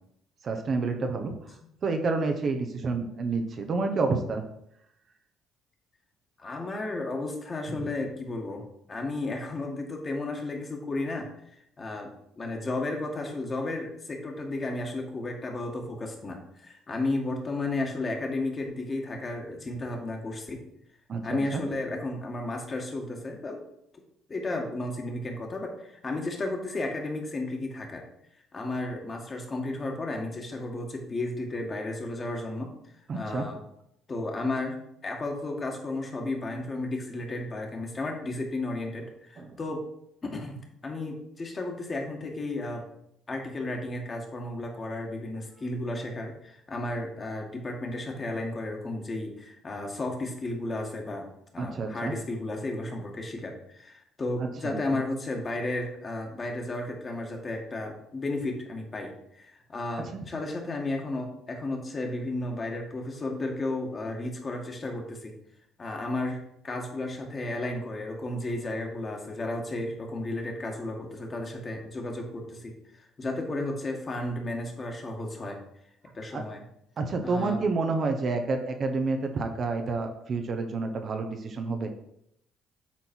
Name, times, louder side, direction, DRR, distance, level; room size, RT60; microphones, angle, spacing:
voice 1, 0.4-4.4 7.8-7.9 21.1-21.6 33.1-33.5 39.4-39.6 51.6-52.1 54.4-54.8 60.0-60.2 76.3-76.4 77.0-81.9, right 3 dB, 50° right, 5 dB, 1.1 m, -29 dB
voice 2, 6.4-8.6 8.9-11.3 11.8-12.1 12.4-20.6 21.2-23.6 24.3-28.0 28.5-32.7 33.1-33.6 34.1-39.8 40.2-42.8 43.3-51.2 51.5-65.3 65.8-75.6 76.1-76.6 77.2-77.6, left 2 dB, 35° left, 1 dB, 2.0 m, -33 dB
8.4 x 4.0 x 4.5 m, 0.76 s
hypercardioid pair, 60°, 0 cm